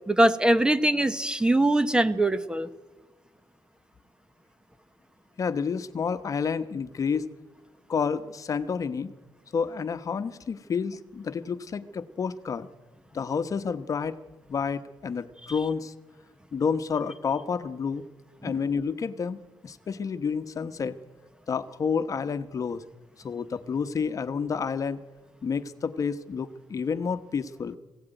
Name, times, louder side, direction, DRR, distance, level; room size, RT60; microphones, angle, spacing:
voice 1, 0.1-2.7 18.4-18.5, right 1 dB, 10° right, 13 dB, 1.0 m, -22 dB
voice 2, 5.4-7.3 7.9-9.1 9.5-12.7 13.1-14.2 14.5-15.9 16.5-18.0 18.4-21.0 21.5-22.8 23.2-25.0 25.4-27.8, left 6 dB, 50° left, 11 dB, 1.1 m, -29 dB
21.5 x 16.5 x 9.1 m, 1.3 s
cardioid pair, 95°, 8 cm